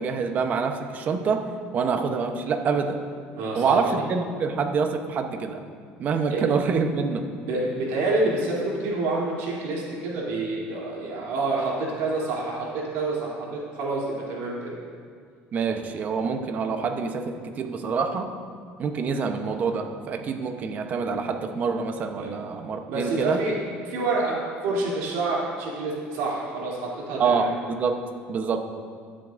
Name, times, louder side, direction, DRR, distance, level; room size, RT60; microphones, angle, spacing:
voice 1, 0.0-1.5 1.7-3.0 3.5-5.6 6.0-7.3 15.5-18.3 18.8-23.4 27.2-27.5 27.8-28.0 28.3-28.6, right 5 dB, 40° right, 6 dB, 0.9 m, -26 dB
voice 2, 3.4-4.0 6.3-6.4 7.4-14.7 22.2-22.3 22.9-27.5, right 2 dB, 80° right, -4 dB, 3.1 m, -28 dB
20.0 x 7.6 x 2.6 m, 2.1 s
cardioid pair, 135°, 4 cm